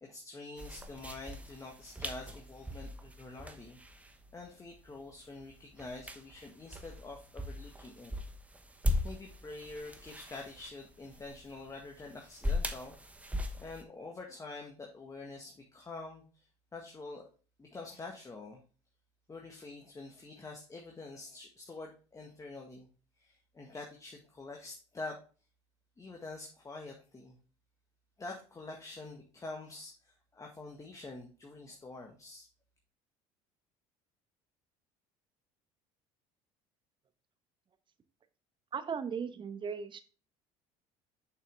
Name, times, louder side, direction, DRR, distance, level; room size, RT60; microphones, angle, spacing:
voice 1, 0.0-3.8 4.1-8.1 9.0-13.0 13.6-16.5 16.7-17.3 17.6-18.6 19.3-22.9 23.2-25.2 26.0-27.4 28.2-32.5, left 3 dB, 20° left, 1 dB, 1.6 m, -46 dB
sound 1, 0.6-13.8, left 1 dB, 10° right, 1.0 m, -39 dB
voice 2, 38.7-40.0, right 6 dB, 35° right, 10 dB, 1.0 m, -37 dB
6.9 x 5.7 x 3.5 m, 0.36 s
supercardioid pair, 90°, 15 cm